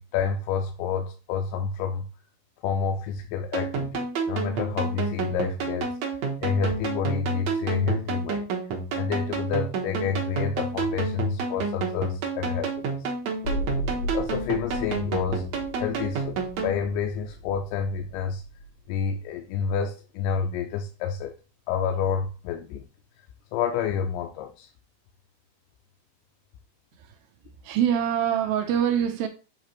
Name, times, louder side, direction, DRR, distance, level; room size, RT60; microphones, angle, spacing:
voice 1, 0.0-2.0 2.6-6.0 6.4-8.5 8.9-13.1 14.1-15.5 15.8-18.4 18.9-21.3 21.7-22.9 23.5-24.7, left 6 dB, 90° left, 2.7 m, -29 dB
sound 1, 3.5-16.8, right 4 dB, 60° right, 1.9 m, -30 dB
sound 2, 13.4-19.4 19.7-19.8, equal, 70° left, 1.2 m, -36 dB
voice 2, 27.6-29.3, right 9 dB, 80° right, 2.2 m, -24 dB
8.0 x 3.4 x 4.3 m
omnidirectional pair, 4.5 m